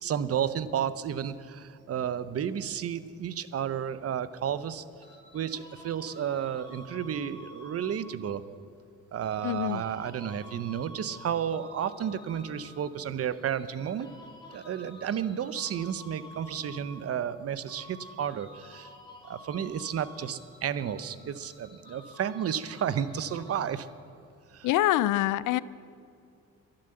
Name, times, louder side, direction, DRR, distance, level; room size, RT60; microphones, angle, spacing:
voice 1, 0.0-4.8 5.3-8.4 9.1-14.1 14.5-18.9 19.2-23.9 24.5-24.7, right 9 dB, 50° right, 15 dB, 0.7 m, -32 dB
sound 1, 5.0-8.4 9.2-13.0 13.5-17.4 17.7-24.0, left 1 dB, 15° left, 2.7 m, -51 dB
voice 2, 9.4-9.8 24.6-25.6, left 15 dB, 85° left, 18 dB, 0.5 m, -25 dB
11.5 x 11.5 x 7.7 m, 2.4 s
cardioid pair, 90°, 30 cm